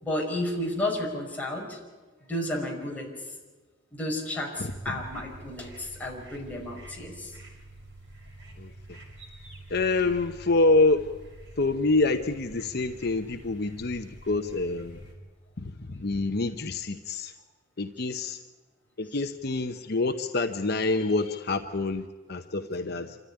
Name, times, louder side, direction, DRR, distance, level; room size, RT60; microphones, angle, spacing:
voice 1, 0.0-1.8 2.3-3.1 3.9-7.3, left 1 dB, 10° left, -2 dB, 5.4 m, -32 dB
voice 2, 4.6-5.0 8.6-8.7 9.7-11.1 11.6-15.0 15.6-17.3 17.8-18.4 19.0-23.2, left 3 dB, 60° left, 7 dB, 0.9 m, -27 dB
sound 1, 4.7-15.2, right 1 dB, 65° right, 5.7 m, -47 dB
26.5 x 14.0 x 10.0 m, 1.3 s
head